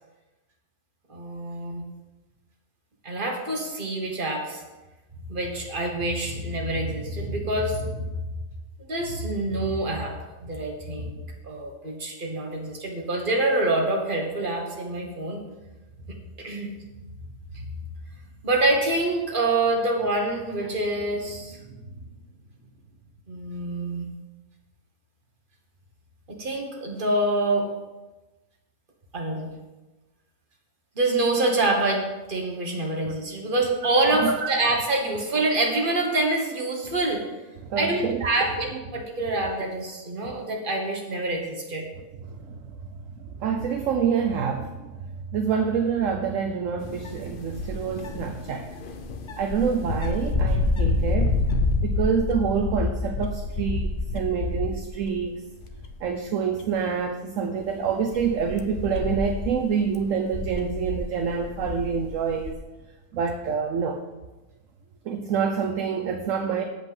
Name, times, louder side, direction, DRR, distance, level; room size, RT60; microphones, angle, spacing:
voice 1, 1.1-1.8 3.0-4.6 5.3-8.0 8.8-10.1 10.4-15.4 16.1-16.7 17.5-17.7 18.4-21.7 23.3-24.1 26.3-27.7 29.1-29.5 30.9-37.2 37.8-41.8, right 2 dB, 35° right, 0 dB, 1.7 m, -26 dB
voice 2, 37.7-38.5 40.3-40.4 42.3-42.6 43.4-45.0 45.3-48.7 49.4-51.4 51.8-55.3 56.0-62.6 63.1-64.0 65.1-66.6, right 6 dB, 65° right, 5 dB, 1.0 m, -27 dB
delta cal tet, 46.8-55.3 55.6-56.1 56.6-56.7 57.6-62.5, left 3 dB, 45° left, 0.7 m, -28 dB
8.1 x 5.3 x 7.7 m, 1.1 s
omnidirectional pair, 1.6 m